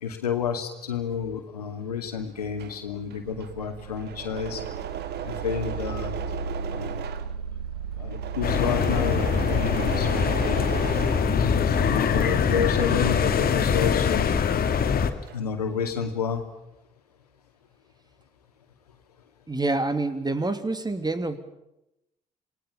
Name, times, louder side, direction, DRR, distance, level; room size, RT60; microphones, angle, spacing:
voice 1, 0.0-4.6 5.2-6.1 6.7-7.0 8.0-10.6 11.2-14.3 15.3-16.4, left 7 dB, 90° left, 6 dB, 2.4 m, -30 dB
Engine / Mechanisms, 2.3-11.9 12.3-14.6 14.9-15.6, right 8 dB, 60° right, 1.9 m, -37 dB
sound 1, 3.2-11.9, right 6 dB, 85° right, 1.5 m, -36 dB
sound 2, 8.4-15.1, left 6 dB, 50° left, 2.6 m, -23 dB
voice 2, 19.5-21.4, right 2 dB, 20° right, 10 dB, 3.0 m, -27 dB
27.5 x 19.5 x 7.2 m, 0.87 s
hypercardioid pair, 45°, 19 cm